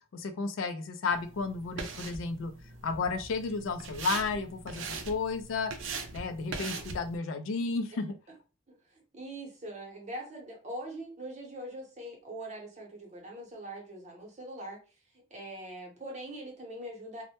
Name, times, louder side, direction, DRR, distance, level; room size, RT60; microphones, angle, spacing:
voice 1, 0.1-2.5 2.8-5.7 6.1-8.2, left 4 dB, 70° left, 8 dB, 0.3 m, -32 dB
sound 1, 1.1-7.2, right 4 dB, 65° right, 0.4 m, -41 dB
voice 2, 8.7-14.8 15.3-17.2, right 1 dB, 35° right, 0 dB, 0.8 m, -42 dB
2.1 x 2.1 x 2.8 m, 0.33 s
head